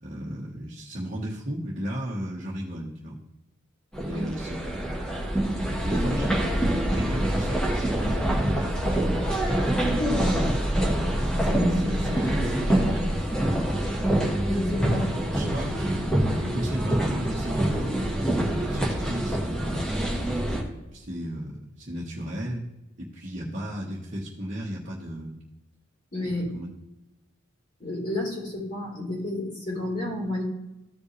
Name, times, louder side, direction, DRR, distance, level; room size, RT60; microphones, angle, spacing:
voice 1, 0.0-3.2 4.0-4.6 5.8-6.4 6.9-9.4 9.6-9.8 10.1-10.4 11.4-13.1 13.8-14.2 15.2-15.9 16.4-19.8 20.5-22.6 23.0-25.4 26.2-26.7, equal, 40° right, -4 dB, 1.2 m, -35 dB
sound 1, 3.9-20.6, right 1 dB, 5° left, 1.4 m, -25 dB
voice 2, 14.5-15.2 26.1-26.4 27.8-30.4, left 1 dB, 40° left, -4 dB, 3.3 m, -31 dB
14.5 x 5.3 x 3.2 m, 0.95 s
head